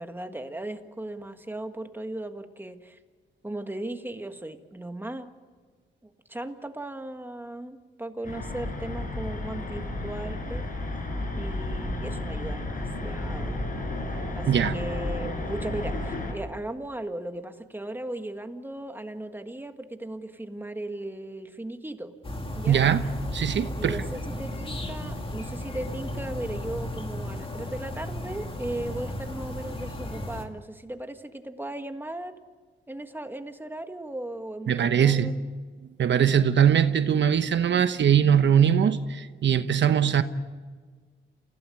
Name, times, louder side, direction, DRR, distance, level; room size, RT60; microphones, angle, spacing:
voice 1, 0.0-3.0 3.4-5.3 6.0-10.7 11.4-13.6 14.3-22.1 22.5-22.9 23.8-32.3 32.9-35.5, right 1 dB, 10° right, 7 dB, 1.7 m, -37 dB
sound 1, 8.2-16.3, left 2 dB, 45° left, 5.3 m, -32 dB
sound 2, 22.2-30.4, left 1 dB, 25° left, 2.6 m, -35 dB
voice 2, 22.7-23.1 23.3-24.0 34.7-35.3 36.0-40.2, right 8 dB, 65° right, 10 dB, 1.1 m, -21 dB
29.0 x 16.5 x 8.6 m, 1.5 s
cardioid pair, 110°, 20 cm